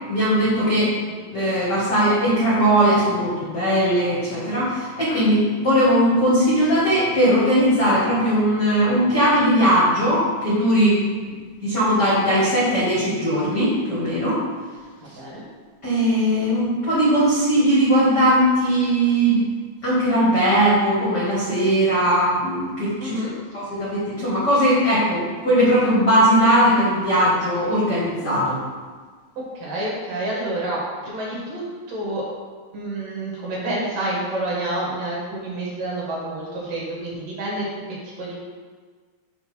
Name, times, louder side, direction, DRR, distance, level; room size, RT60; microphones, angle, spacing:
voice 1, 0.1-0.9 1.3-11.0 11.6-14.4 15.8-19.4 19.8-23.2 23.5-28.6, equal, 75° left, -9 dB, 0.9 m, -19 dB
voice 2, 15.0-15.4 23.0-23.3 29.4-32.3 32.7-38.3, right 1 dB, 60° right, -6 dB, 3.1 m, -29 dB
7.8 x 2.8 x 6.1 m, 1.5 s
omnidirectional pair, 4.6 m